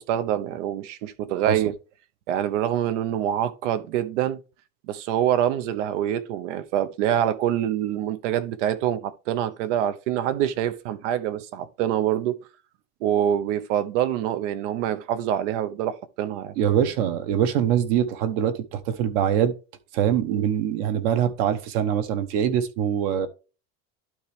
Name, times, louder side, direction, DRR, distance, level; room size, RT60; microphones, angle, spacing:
voice 1, 0.0-1.7 2.3-4.4 4.9-12.4 13.0-16.5 20.3-20.5, right 10 dB, 75° right, 1.0 m, -25 dB
voice 2, 16.6-19.5 19.9-23.3, right 9 dB, 55° right, 1.1 m, -23 dB
12.0 x 4.4 x 3.4 m
cardioid pair, 175°, 36 cm